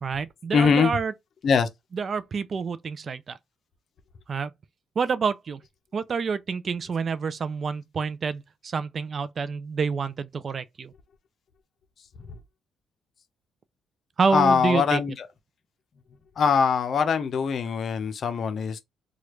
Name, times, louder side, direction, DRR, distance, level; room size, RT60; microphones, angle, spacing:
voice 1, 0.0-1.1 1.9-3.4 4.3-4.5 5.0-5.6 5.9-10.9 14.2-15.0, right 5 dB, 45° right, 0.3 m, -28 dB
voice 2, 0.5-1.0 1.4-1.7 12.2-12.4 14.3-15.3 16.4-18.8, left 6 dB, 55° left, 0.7 m, -22 dB
3.1 x 2.4 x 3.1 m
cardioid pair, 90°, 0 cm